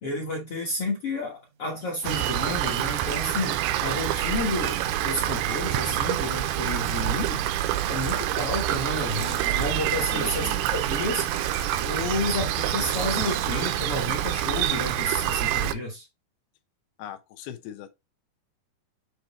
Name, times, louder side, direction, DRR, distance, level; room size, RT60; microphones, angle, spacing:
voice 1, 0.0-16.1, left 2 dB, 60° left, 1.5 m, -31 dB
sound 1, 1.1-2.7 3.0-10.2 10.5-15.2, right 8 dB, 75° right, 1.6 m, -45 dB
Rain, 2.0-15.7, right 12 dB, 90° right, 2.6 m, -27 dB
voice 2, 10.1-10.6 17.0-17.9, left 11 dB, 85° left, 2.7 m, -39 dB
7.7 x 3.0 x 4.0 m
omnidirectional pair, 4.4 m